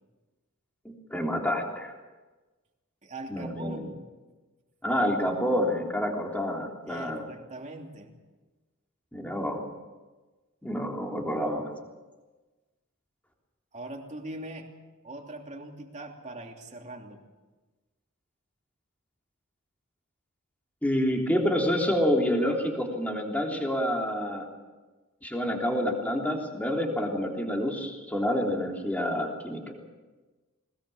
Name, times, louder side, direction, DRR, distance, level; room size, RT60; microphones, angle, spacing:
voice 1, 0.8-1.9 3.3-3.9 4.8-7.3 9.1-9.6 10.6-11.7 20.8-24.5 25.2-29.7, equal, 5° left, 0 dB, 3.4 m, -28 dB
voice 2, 3.0-4.0 6.9-8.1 13.7-14.7 15.0-17.2, right 2 dB, 35° right, 1 dB, 3.0 m, -41 dB
21.0 x 20.5 x 7.2 m, 1.2 s
head